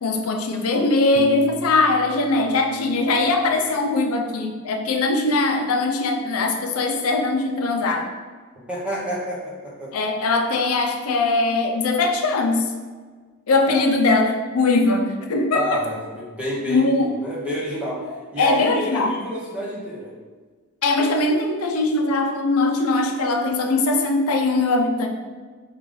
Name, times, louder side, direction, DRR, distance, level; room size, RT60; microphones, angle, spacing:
voice 1, 0.0-8.1 9.9-12.7 13.5-15.8 16.7-17.1 18.4-19.1 20.8-25.1, left 3 dB, 85° left, 3 dB, 0.5 m, -21 dB
Piano, 1.1-4.1, right 2 dB, 40° right, 0.4 m, -39 dB
voice 2, 8.7-9.9 13.7-13.8 15.5-20.1, equal, 5° right, -6 dB, 0.9 m, -29 dB
4.7 x 2.4 x 3.8 m, 1.5 s
head